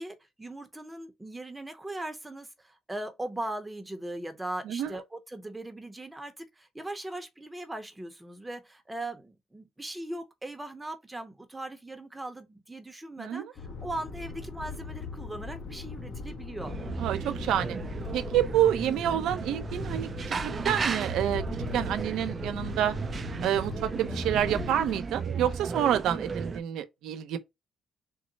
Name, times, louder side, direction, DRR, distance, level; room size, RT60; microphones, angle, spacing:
voice 1, 0.0-16.7, right 1 dB, 15° right, 0.7 m, -39 dB
sound 1, 13.5-25.0, left 4 dB, 60° left, 0.9 m, -39 dB
sound 2, 16.6-26.6, right 5 dB, 40° right, 0.3 m, -35 dB
voice 2, 17.0-17.8 18.1-21.4 21.7-22.9 23.4-27.4, right 10 dB, 85° right, 0.6 m, -28 dB
3.8 x 2.0 x 3.9 m
cardioid pair, 90°, 0 cm